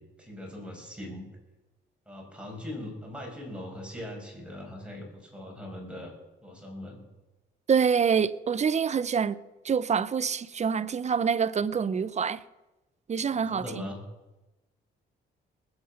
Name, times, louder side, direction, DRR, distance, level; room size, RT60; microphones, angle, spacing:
voice 1, 0.2-1.3 2.1-6.1 6.4-7.1 13.3-14.0, left 1 dB, 5° right, 5.7 m, -40 dB
voice 2, 7.7-9.4 9.6-12.4 13.1-13.8, right 6 dB, 35° right, 0.7 m, -26 dB
20.0 x 8.8 x 5.8 m
cardioid pair, 90°, 20 cm